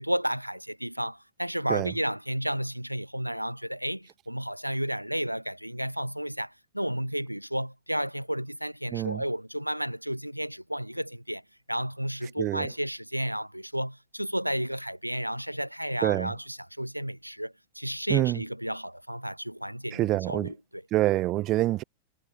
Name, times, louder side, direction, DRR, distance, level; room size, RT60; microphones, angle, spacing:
voice 1, 0.0-11.4 11.7-20.8, equal, 90° right, 1.0 m, -32 dB
voice 2, 8.9-9.2 12.4-12.7 16.0-16.3 18.1-18.4 19.9-20.5 20.9-21.8, right 16 dB, 35° right, 1.0 m, -26 dB
figure-of-eight pair, 90°, 0 cm